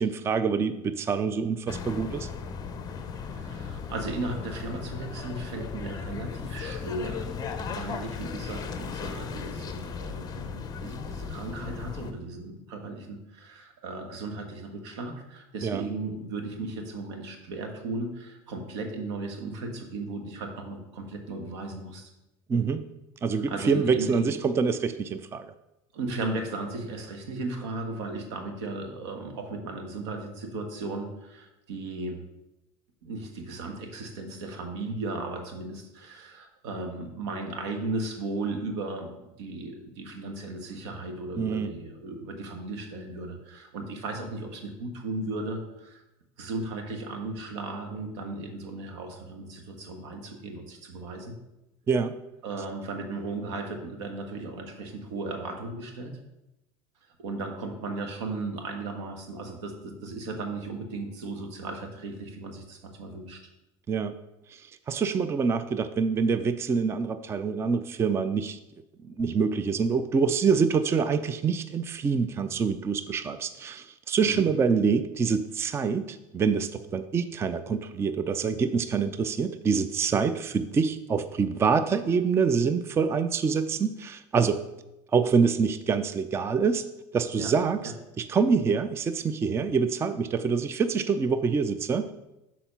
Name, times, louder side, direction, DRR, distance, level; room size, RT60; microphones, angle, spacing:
voice 1, 0.0-2.3 15.6-15.8 22.5-22.8 23.2-25.5 41.4-41.7 51.9-52.1 63.9-64.2 64.5-64.6 64.9-68.6 69.0-84.6 85.1-86.9 87.1-92.1, right 5 dB, 15° right, 11 dB, 0.3 m, -26 dB
sound 1, 1.7-12.1, left 6 dB, 25° left, 0.7 m, -36 dB
voice 2, 3.1-22.1 23.5-24.4 25.9-32.2 33.0-46.0 46.4-51.3 52.4-56.1 57.2-63.4 74.2-74.4 87.4-87.5 87.8-87.9, right 2 dB, 85° right, 4 dB, 1.4 m, -36 dB
6.9 x 4.1 x 5.7 m, 0.94 s
supercardioid pair, 125°, 15 cm